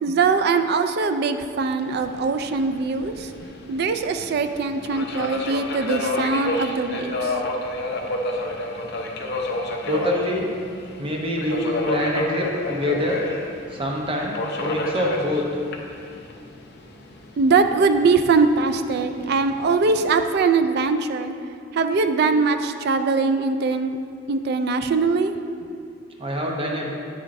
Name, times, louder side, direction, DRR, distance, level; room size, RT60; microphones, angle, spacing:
voice 1, 0.0-3.3 3.7-7.4 17.4-21.3 21.7-24.0 24.3-25.4, right 4 dB, 50° right, 8 dB, 0.3 m, -21 dB
Subway metro underground, 1.8-20.3, left 1 dB, 55° left, 0.7 m, -30 dB
voice 2, 9.9-10.5 11.0-13.2 13.7-15.5 26.2-26.9, left 1 dB, 25° right, -1 dB, 0.7 m, -25 dB
8.9 x 7.0 x 2.6 m, 2.4 s
head